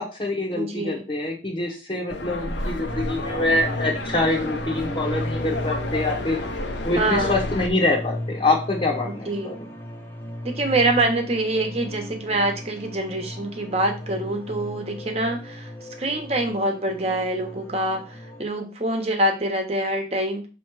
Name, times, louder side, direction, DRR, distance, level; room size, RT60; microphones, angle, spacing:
voice 1, 0.0-6.4 6.8-9.5, left 2 dB, 30° left, -2 dB, 1.1 m, -25 dB
voice 2, 0.5-1.0 6.9-7.4 9.0-9.5 10.4-20.5, right 2 dB, 35° right, 4 dB, 1.2 m, -25 dB
sound 1, 2.1-7.7, left 2 dB, 85° left, 1.0 m, -31 dB
sound 2, 2.8-18.4, left 1 dB, 10° left, 1.0 m, -35 dB
6.7 x 3.1 x 4.8 m, 0.33 s
head